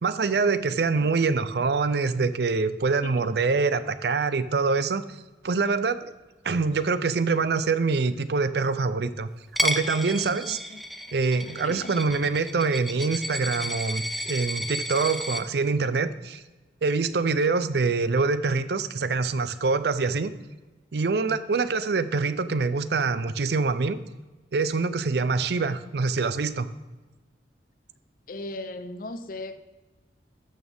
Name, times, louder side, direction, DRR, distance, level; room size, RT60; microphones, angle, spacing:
voice 1, 0.0-5.0 5.4-6.1 6.4-9.3 9.6-10.6 11.1-16.4 16.8-20.3 20.9-24.0 24.5-26.7, right 4 dB, 65° right, 0.5 m, -25 dB
Coin (dropping), 9.6-15.4, equal, ahead, 0.4 m, -32 dB
voice 2, 10.5-10.8 11.3-11.9 28.3-29.6, left 2 dB, 50° left, 0.6 m, -38 dB
13.0 x 6.3 x 3.5 m
head